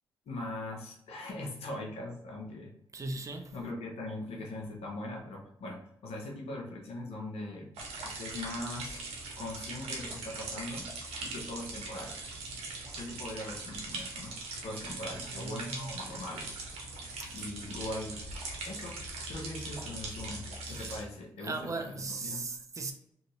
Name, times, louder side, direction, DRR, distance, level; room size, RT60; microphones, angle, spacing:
voice 1, 0.3-2.7 3.5-7.7 8.0-9.1 9.4-10.9 11.2-12.2 13.0-14.3 14.6-16.5 17.3-18.2 18.6-19.0 19.3-22.5, left 2 dB, 75° left, 0.8 m, -41 dB
voice 2, 2.9-3.6 15.2-15.9 17.2-17.5 20.7-21.0 21.4-22.9, right 3 dB, 30° right, 0.5 m, -38 dB
sound 1, 7.8-21.0, right 3 dB, 80° right, 0.7 m, -41 dB
2.7 x 2.6 x 3.0 m
supercardioid pair, 50°, 10 cm